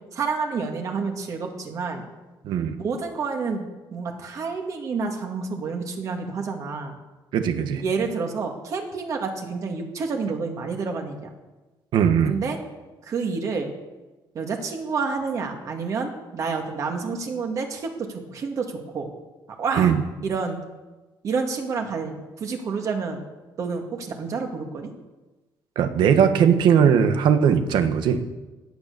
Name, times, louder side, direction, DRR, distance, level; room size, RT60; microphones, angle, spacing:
voice 1, 0.1-2.0 2.8-6.9 7.8-11.3 12.3-12.6 13.1-13.7 14.3-19.1 19.6-19.9 20.2-20.6 21.2-22.1 22.4-23.2 23.6-24.9, right 4 dB, 40° right, 3 dB, 2.2 m, -29 dB
voice 2, 2.4-2.8 7.3-7.8 11.9-12.3 19.8-20.0 25.7-28.2, right 8 dB, 70° right, 8 dB, 1.4 m, -19 dB
16.5 x 11.0 x 6.9 m, 1.1 s
cardioid pair, 170°, 8 cm